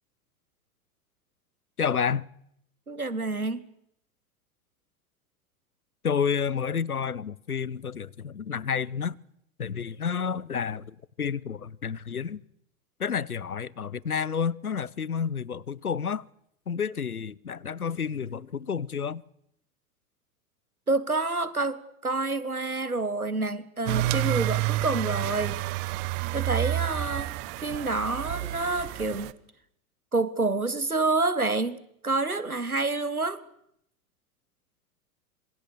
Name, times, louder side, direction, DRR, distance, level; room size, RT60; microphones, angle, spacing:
voice 1, 1.8-2.3 6.0-9.2 9.6-12.4 13.0-16.2 16.7-19.2, left 6 dB, 85° left, 0.9 m, -30 dB
voice 2, 2.9-3.7 20.9-25.6 26.3-29.3 30.1-31.8 32.0-33.4, right 3 dB, 90° right, 1.5 m, -28 dB
sound 1, 23.9-29.3, right 15 dB, 40° right, 1.2 m, -29 dB
26.5 x 24.5 x 6.7 m
figure-of-eight pair, 90°, 43 cm